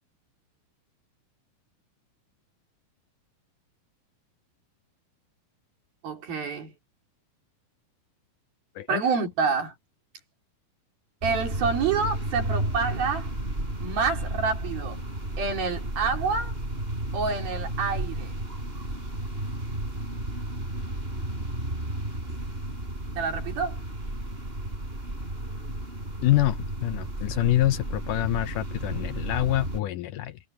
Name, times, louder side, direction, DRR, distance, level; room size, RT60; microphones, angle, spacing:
voice 1, 6.0-6.7 8.9-9.7 11.2-13.3 13.8-15.0 15.4-16.5 17.1-18.4 23.2-23.8, right 5 dB, 80° right, 5.7 m, -28 dB
sound 1, 11.2-29.8, right 1 dB, 15° right, 6.3 m, -33 dB
voice 2, 26.2-30.4, left 15 dB, 75° left, 2.0 m, -26 dB
omnidirectional pair, 4.2 m